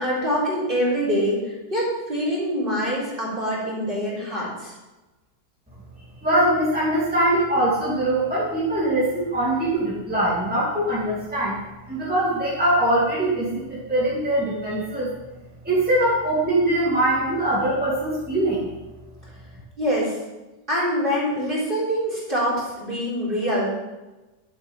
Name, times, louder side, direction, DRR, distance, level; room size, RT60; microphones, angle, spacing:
voice 1, 0.0-4.7 19.8-20.2 20.7-23.7, equal, 30° right, -5 dB, 4.0 m, -25 dB
voice 2, 6.2-11.6 11.9-15.1 15.6-18.7, right 1 dB, 5° right, -8 dB, 2.5 m, -22 dB
11.5 x 7.6 x 5.5 m, 1.1 s
omnidirectional pair, 1.8 m